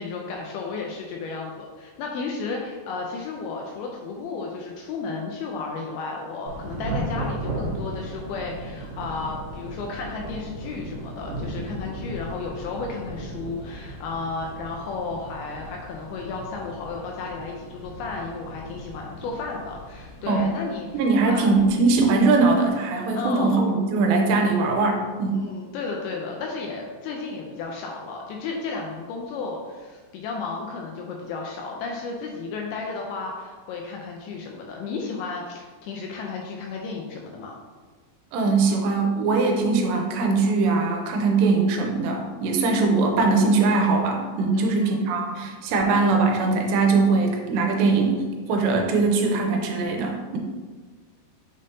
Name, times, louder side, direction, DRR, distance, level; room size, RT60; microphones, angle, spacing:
voice 1, 0.0-21.4 23.1-23.6 25.3-37.5 44.5-45.0, left 4 dB, 85° left, 0 dB, 2.3 m, -33 dB
Thunder / Rain, 6.5-22.7, right 1 dB, 50° right, 2.4 m, -36 dB
voice 2, 21.0-25.4 38.3-48.2 48.5-50.4, right 3 dB, 90° right, 2 dB, 2.8 m, -21 dB
6.4 x 5.4 x 2.7 m, 1.4 s
omnidirectional pair, 4.9 m